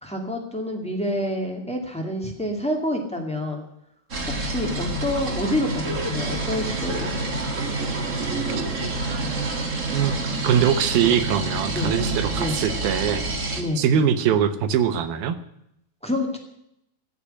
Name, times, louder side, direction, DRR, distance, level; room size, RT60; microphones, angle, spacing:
voice 1, 0.0-3.6 4.3-7.1 11.7-11.9 12.4-12.6 13.5-13.8 16.0-16.4, left 1 dB, 5° left, 1 dB, 0.5 m, -27 dB
sound 1, 4.1-13.6, right 2 dB, 40° right, 1.1 m, -28 dB
voice 2, 9.1-10.2 10.4-15.4, right 8 dB, 70° right, 10 dB, 2.6 m, -23 dB
16.0 x 6.8 x 9.8 m, 0.77 s
omnidirectional pair, 4.8 m